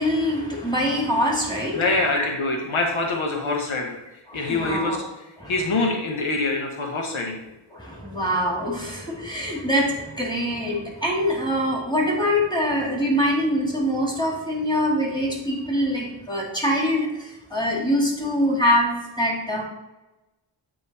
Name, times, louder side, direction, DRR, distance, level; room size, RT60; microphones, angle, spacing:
voice 1, 0.0-1.8 2.1-2.3 4.3-5.0 5.4-5.6 7.7-19.6, equal, 10° left, -2 dB, 2.2 m, -24 dB
voice 2, 1.7-4.0 4.3-5.0 5.5-7.4, left 3 dB, 85° left, 1 dB, 1.1 m, -24 dB
8.7 x 3.0 x 4.2 m, 0.99 s
cardioid pair, 65°, 47 cm